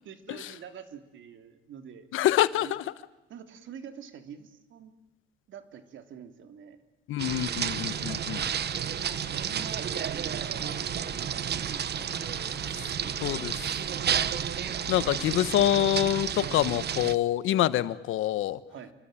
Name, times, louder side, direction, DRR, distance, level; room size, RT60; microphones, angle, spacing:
voice 1, 0.0-2.1 2.5-2.7 3.3-4.9 5.5-6.8 9.0-10.8 11.1-12.5 15.0-15.6 16.3-16.6 18.7-18.9, right 8 dB, 75° right, 9 dB, 3.0 m, -46 dB
voice 2, 2.1-2.8 7.1-8.4 12.8-12.9 13.2-13.8 14.9-18.6, left 13 dB, 85° left, 16 dB, 1.2 m, -26 dB
sound 1, 7.2-17.1, right 9 dB, 55° right, 1.2 m, -31 dB
sound 2, 7.7-15.7, left 6 dB, 45° left, 2.5 m, -48 dB
28.0 x 22.5 x 9.0 m, 1.0 s
cardioid pair, 90°, 20 cm